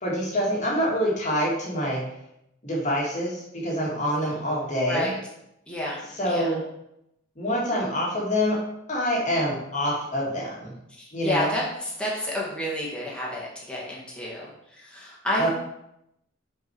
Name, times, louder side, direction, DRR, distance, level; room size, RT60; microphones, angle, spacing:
voice 1, 0.0-2.0 2.6-5.1 6.1-6.6 7.4-8.6 8.9-10.7 11.1-11.6 15.4-15.5, equal, 35° left, -4 dB, 1.8 m, -26 dB
voice 2, 5.7-6.5 10.9-15.5, left 1 dB, 5° left, -6 dB, 1.6 m, -30 dB
5.5 x 4.6 x 4.6 m, 0.81 s
head